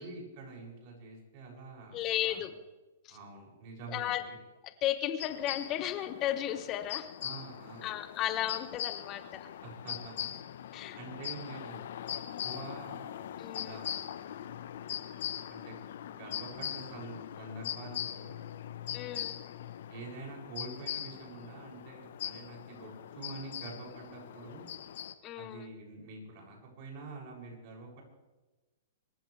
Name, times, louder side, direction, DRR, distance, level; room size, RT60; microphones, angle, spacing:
voice 1, 0.0-2.4 3.1-4.4 7.2-7.9 9.6-10.3 10.9-13.1 13.5-14.1 15.5-15.9 16.2-18.4 19.9-24.7 25.3-28.0, right 3 dB, 50° right, -1 dB, 7.2 m, -46 dB
voice 2, 1.9-2.5 3.0-3.2 3.9-4.2 4.6-7.1 7.8-9.5 10.7-11.0 13.4-13.8 18.9-19.4 25.2-25.7, left 12 dB, 35° left, 11 dB, 1.1 m, -34 dB
sound 1, 5.2-25.1, left 10 dB, 70° left, 1.1 m, -41 dB
25.5 x 14.5 x 3.4 m, 1.1 s
hypercardioid pair, 125°, 0 cm